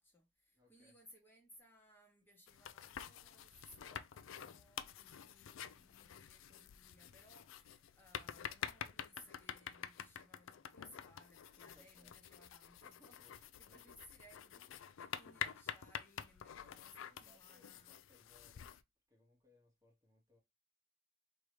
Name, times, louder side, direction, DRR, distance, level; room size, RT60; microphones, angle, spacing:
voice 1, 0.0-18.0, equal, 10° left, 0.9 m, -64 dB
voice 2, 0.5-1.0 5.6-5.9 11.7-12.1 13.2-13.8 17.0-18.6 19.1-20.4, left 1 dB, 15° right, 0.9 m, -70 dB
sound 1, 2.5-18.8, left 9 dB, 75° left, 0.4 m, -48 dB
4.6 x 2.7 x 3.2 m
head